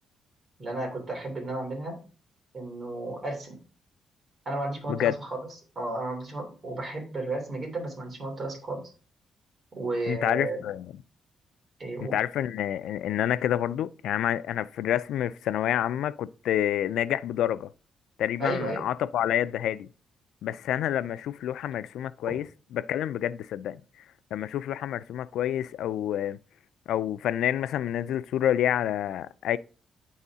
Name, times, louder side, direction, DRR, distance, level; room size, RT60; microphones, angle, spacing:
voice 1, 0.6-2.0 2.5-3.6 4.4-5.5 5.7-8.8 9.7-10.6 11.8-12.2 18.4-18.8 22.3-22.4, right 2 dB, 35° right, 3.1 m, -33 dB
voice 2, 10.1-10.9 12.0-17.7 18.2-19.9 20.4-22.4 22.7-23.8 24.3-26.4 26.9-29.6, left 11 dB, 85° left, 0.3 m, -28 dB
9.7 x 4.2 x 3.6 m
cardioid pair, 135°, 0 cm